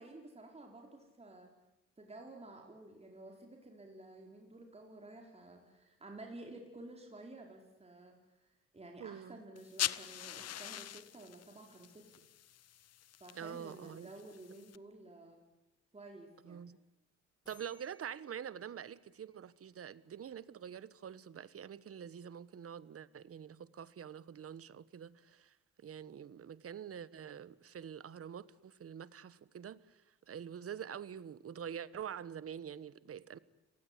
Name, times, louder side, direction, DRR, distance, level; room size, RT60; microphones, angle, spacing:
voice 1, 0.0-1.5 2.0-12.2 13.2-15.4 15.9-16.7, right 2 dB, 20° right, 4.7 m, -52 dB
voice 2, 9.0-9.4 13.3-14.1 16.5-16.8 17.5-25.5 25.8-30.0 30.3-33.4, right 8 dB, 50° right, 1.3 m, -46 dB
sound 1, 9.6-14.8, left 11 dB, 55° left, 0.9 m, -43 dB
sound 2, 17.5-20.2, left 2 dB, 15° left, 6.5 m, -65 dB
30.0 x 19.0 x 9.9 m
cardioid pair, 90°, 30 cm